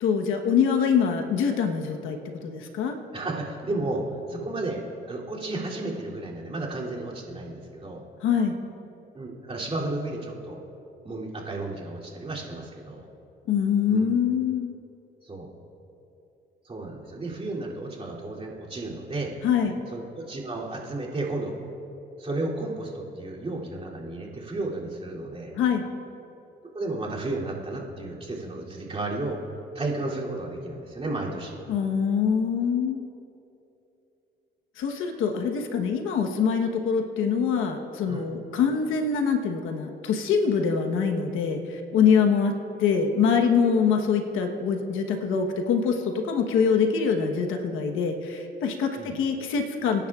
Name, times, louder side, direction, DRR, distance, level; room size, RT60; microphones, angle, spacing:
voice 1, 0.0-2.9 8.2-8.5 13.5-14.7 19.4-19.7 25.6-25.8 31.7-33.0 34.8-50.1, left 6 dB, 90° left, 4 dB, 1.2 m, -24 dB
voice 2, 3.1-4.0 4.3-8.0 9.1-10.6 11.0-13.1 13.9-14.0 15.2-15.5 16.6-19.3 19.9-21.5 22.2-25.6 26.7-29.4 29.7-31.6 38.1-38.3 48.9-49.1, right 2 dB, 30° right, -4 dB, 3.0 m, -33 dB
27.0 x 10.5 x 2.4 m, 2.8 s
cardioid pair, 90°, 20 cm